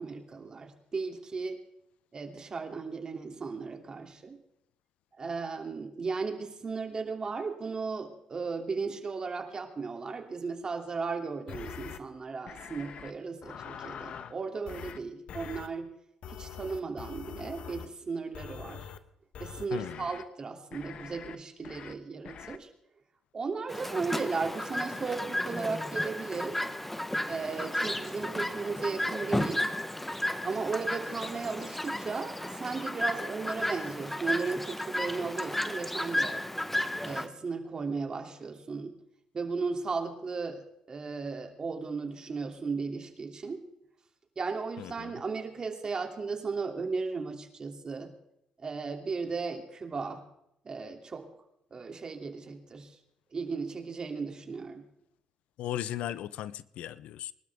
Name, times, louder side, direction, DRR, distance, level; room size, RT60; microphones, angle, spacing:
voice 1, 0.0-1.6 2.1-4.4 5.2-15.9 16.3-18.9 19.4-22.7 23.3-26.6 27.3-29.6 30.4-36.4 37.0-38.9 39.3-43.6 44.4-48.1 48.6-50.2 50.6-51.3 51.7-53.0 53.3-54.8, right 4 dB, 40° right, 2.9 m, -35 dB
sound 1, 11.5-12.0 12.5-13.1 13.4-14.3 14.7-15.0 15.3-15.7 16.2-17.9 18.3-19.0 19.3-20.2 20.7-21.4 21.6-21.9 22.3-22.6, left 8 dB, 65° left, 1.2 m, -44 dB
voice 2, 19.7-20.1 44.8-45.1 55.6-57.3, left 12 dB, 80° left, 0.6 m, -37 dB
Chirp tweet, 23.7-37.3, left 1 dB, 10° left, 1.0 m, -33 dB
23.5 x 12.5 x 3.6 m
cardioid pair, 85°, 2 cm